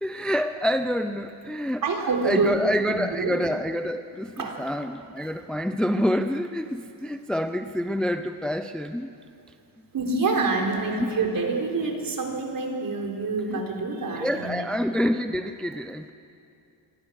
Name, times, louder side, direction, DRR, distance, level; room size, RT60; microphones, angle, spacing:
voice 1, 0.0-9.1 11.0-11.2 13.5-13.6 14.2-16.1, equal, ahead, 8 dB, 0.5 m, -27 dB
voice 2, 1.8-2.6 2.9-3.4 4.4-4.6 9.9-14.7, right 3 dB, 45° right, 1 dB, 3.9 m, -27 dB
27.0 x 24.0 x 6.4 m, 2.5 s
cardioid pair, 155°, 46 cm